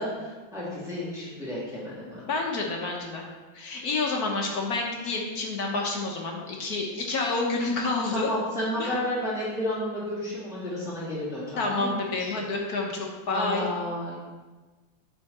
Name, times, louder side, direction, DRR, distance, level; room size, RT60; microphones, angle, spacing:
voice 1, 0.0-2.2 8.1-12.3 13.3-14.2, left 1 dB, ahead, -10 dB, 2.6 m, -32 dB
voice 2, 2.2-3.3 3.5-8.3 8.8-8.9 11.6-13.7, left 3 dB, 55° left, 0 dB, 1.4 m, -29 dB
11.5 x 4.5 x 4.2 m, 1.3 s
omnidirectional pair, 2.2 m